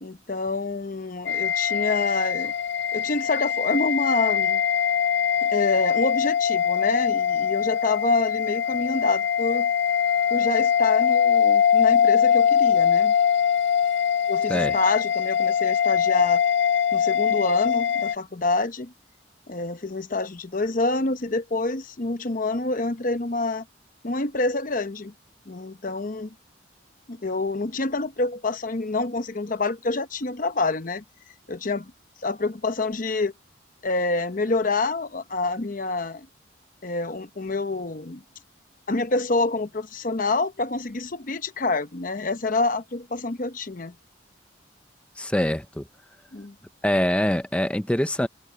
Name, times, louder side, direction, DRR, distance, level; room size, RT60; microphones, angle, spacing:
voice 1, 0.0-2.5 2.9-4.6 5.4-9.7 10.3-13.1 14.3-16.4 16.9-18.9 19.5-23.6 24.0-25.1 25.5-26.3 27.1-31.0 31.5-31.9 32.2-33.3 33.8-36.3 36.8-38.2 38.9-43.9 46.3-46.5, left 3 dB, 45° left, 0.8 m, -27 dB
sound 1, 1.3-18.2, left 8 dB, 60° left, 0.5 m, -22 dB
voice 2, 45.2-45.8 46.8-48.3, left 1 dB, 5° left, 0.6 m, -24 dB
head